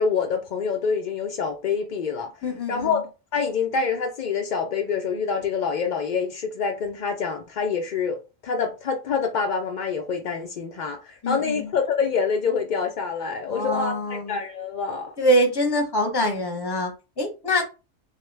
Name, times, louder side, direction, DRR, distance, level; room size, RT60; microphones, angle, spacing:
voice 1, 0.0-2.3 2.7-3.0 3.3-8.2 8.4-15.1, left 5 dB, 85° left, 0.4 m, -26 dB
voice 2, 2.4-3.0 11.2-11.7 13.5-14.4 15.2-17.7, equal, 25° left, 0.7 m, -24 dB
3.2 x 2.2 x 3.2 m
omnidirectional pair, 1.4 m